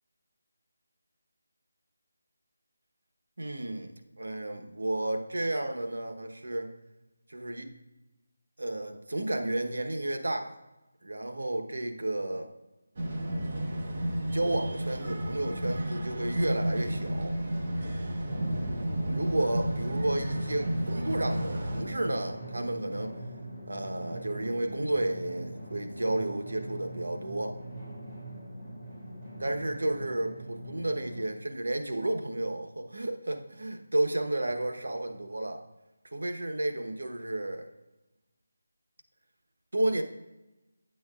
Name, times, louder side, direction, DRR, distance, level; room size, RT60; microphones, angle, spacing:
voice 1, 3.4-6.7 7.3-7.7 8.6-10.5 11.0-12.5 14.3-17.4 19.1-23.2 23.7-27.6 29.4-35.6 36.1-37.7 39.7-40.0, right 1 dB, 90° right, 4 dB, 1.0 m, -32 dB
sound 1, 13.0-21.8, right 1 dB, 45° right, 1.2 m, -32 dB
Drum, 18.3-31.2, right 1 dB, 15° right, 2.7 m, -41 dB
9.2 x 8.5 x 2.4 m, 1.0 s
figure-of-eight pair, 170°, 0 cm